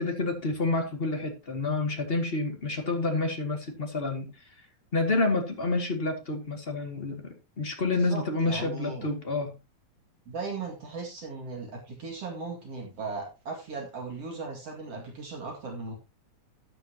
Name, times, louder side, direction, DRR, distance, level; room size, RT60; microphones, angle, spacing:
voice 1, 0.0-4.3 4.9-9.5, left 3 dB, 25° left, 4 dB, 1.7 m, -29 dB
voice 2, 8.0-9.1 10.3-15.9, right 3 dB, 55° right, 0 dB, 3.1 m, -37 dB
13.5 x 9.4 x 2.9 m, 0.25 s
omnidirectional pair, 3.4 m